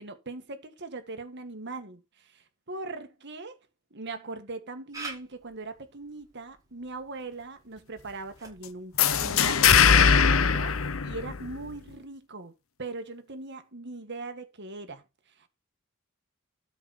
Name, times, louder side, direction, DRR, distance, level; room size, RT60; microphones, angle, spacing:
voice 1, 0.0-3.6 3.9-12.5 12.8-15.0 15.4-15.5, right 3 dB, 55° right, 2.0 m, -40 dB
Camera, 4.9-10.3, right 3 dB, 15° right, 5.1 m, -48 dB
sound 1, 9.0-11.7, left 7 dB, 75° left, 0.9 m, -21 dB
12.5 x 6.0 x 4.5 m
head